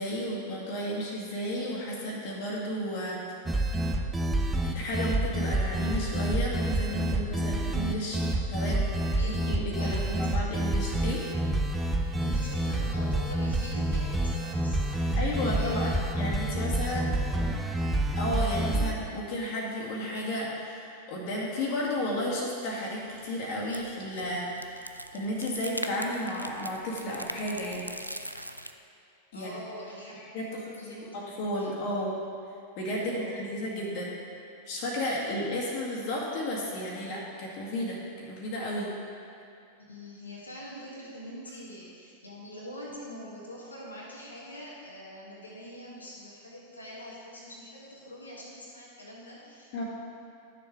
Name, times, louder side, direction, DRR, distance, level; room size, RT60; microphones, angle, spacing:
voice 1, 0.0-3.2 4.7-8.2 8.5-8.9 9.2-11.2 15.2-15.9 16.2-17.1 18.2-27.9 29.3-29.5 30.1-30.5 31.0-32.1 32.8-34.1 34.7-38.9 49.7-49.8, left 1 dB, 45° left, -4 dB, 1.9 m, -33 dB
sound 1, 3.5-18.9, right 1 dB, 10° right, 0.6 m, -28 dB
voice 2, 9.6-10.3 10.8-10.9 12.2-16.0 16.8-17.0 29.3-32.0 33.0-33.4 39.9-49.8, equal, 80° left, -6 dB, 1.5 m, -44 dB
sound 2, 23.0-28.7, equal, 90° right, 0.3 m, -41 dB
11.0 x 6.7 x 3.7 m, 2.6 s
figure-of-eight pair, 90°, 0 cm